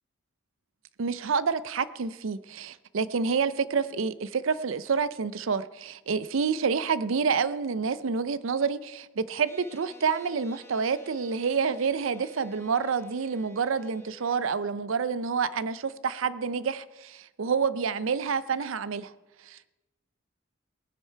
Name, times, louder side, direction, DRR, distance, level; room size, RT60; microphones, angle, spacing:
voice 1, 1.0-19.1 19.5-19.7, right 5 dB, 85° right, 16 dB, 0.5 m, -28 dB
sound 1, 9.5-14.5, left 1 dB, 10° left, 1.1 m, -53 dB
18.5 x 10.0 x 4.6 m, 1.1 s
head